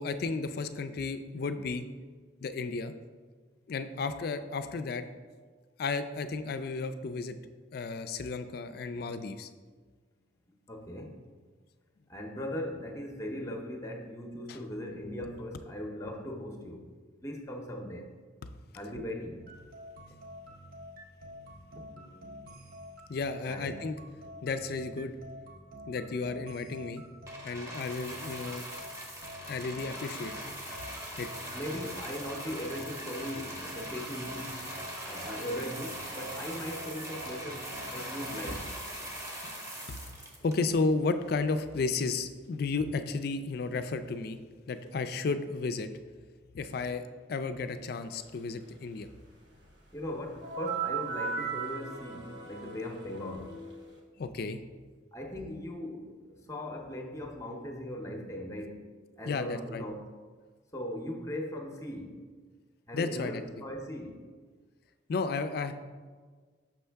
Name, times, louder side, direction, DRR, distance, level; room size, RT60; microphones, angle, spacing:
voice 1, 0.0-1.8 2.4-2.9 3.7-5.0 5.8-7.4 7.7-9.5 14.5-14.6 18.4-18.5 23.1-24.0 24.4-25.1 25.9-27.0 27.4-28.6 29.4-30.3 31.2-31.3 39.9-40.0 40.4-44.4 44.7-45.9 46.5-49.1 54.2-54.6 59.3-59.8 62.9-63.4 65.1-65.7, left 4 dB, 50° left, 10 dB, 0.3 m, -33 dB
voice 2, 10.7-11.2 12.1-16.9 17.2-18.1 18.7-19.4 23.4-23.8 31.5-34.7 35.0-38.7 49.9-53.7 55.1-58.8 59.2-60.0 60.7-62.2 62.9-64.2, left 1 dB, 15° left, 3 dB, 0.6 m, -39 dB
sound 1, 19.4-38.6, equal, 45° right, 0.8 m, -47 dB
sound 2, 27.3-40.9 41.7-41.8, equal, 15° right, 0.8 m, -41 dB
sound 3, 50.4-54.0, right 6 dB, 65° right, 1.2 m, -37 dB
6.2 x 5.4 x 3.4 m, 1.5 s
head